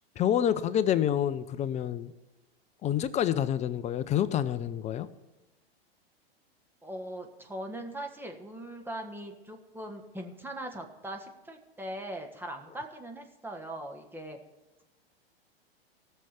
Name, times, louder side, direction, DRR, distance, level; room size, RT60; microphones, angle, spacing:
voice 1, 0.2-2.1 2.8-5.1, left 10 dB, 20° left, 0.5 m, -27 dB
voice 2, 6.8-14.4, right 1 dB, 5° right, 1.4 m, -40 dB
17.0 x 6.7 x 5.8 m
hypercardioid pair, 100°, 31 cm